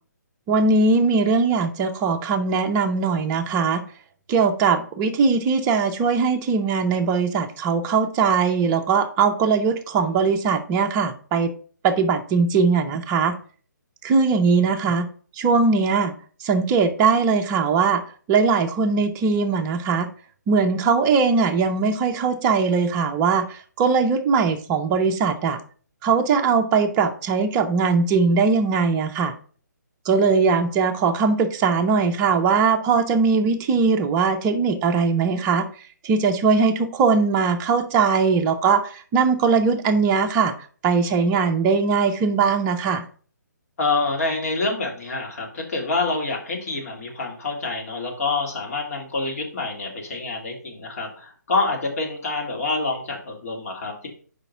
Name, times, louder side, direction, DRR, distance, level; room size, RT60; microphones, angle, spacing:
voice 1, 0.5-3.8 4.3-11.5 11.8-13.3 14.0-15.1 15.4-16.1 16.4-18.0 18.3-20.1 20.5-25.6 26.0-29.3 30.1-35.6 36.0-40.5 40.8-43.0, right 5 dB, 20° right, 5 dB, 0.6 m, -20 dB
voice 2, 43.8-54.1, left 3 dB, 50° left, 0 dB, 2.1 m, -27 dB
5.0 x 4.0 x 5.5 m, 0.43 s
figure-of-eight pair, 140°, 10 cm